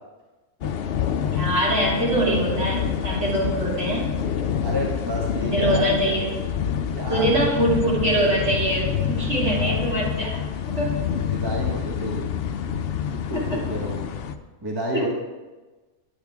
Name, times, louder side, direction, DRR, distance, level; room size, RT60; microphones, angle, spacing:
sound 1, 0.6-14.3, left 8 dB, 65° left, 0.6 m, -27 dB
voice 1, 1.3-4.1 5.4-6.3 7.1-10.4 10.7-11.0 13.3-13.6 14.9-15.1, right 1 dB, 50° right, -6 dB, 3.1 m, -23 dB
voice 2, 3.1-3.4 4.6-5.9 6.9-7.4 9.5-9.8 11.1-12.3 13.1-14.1 14.6-15.1, right 1 dB, 20° right, -1 dB, 1.1 m, -31 dB
9.7 x 8.8 x 3.5 m, 1.2 s
omnidirectional pair, 1.5 m